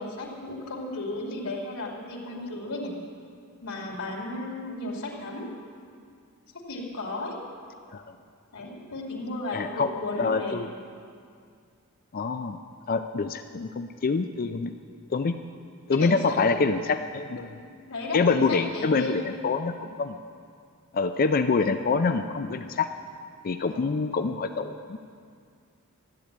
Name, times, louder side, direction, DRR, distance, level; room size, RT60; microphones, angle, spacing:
voice 1, 0.0-2.9 3.6-5.5 6.5-7.4 8.5-10.6 15.9-16.6 17.6-19.5 23.7-23.9, left 2 dB, 90° left, -2 dB, 2.6 m, -34 dB
voice 2, 9.5-9.9 10.2-10.7 12.1-12.6 12.9-14.7 15.1-15.4 15.9-17.5 18.1-20.2 20.9-22.9 23.4-25.0, left 4 dB, 40° left, 9 dB, 0.5 m, -26 dB
13.5 x 8.5 x 9.9 m, 2.3 s
head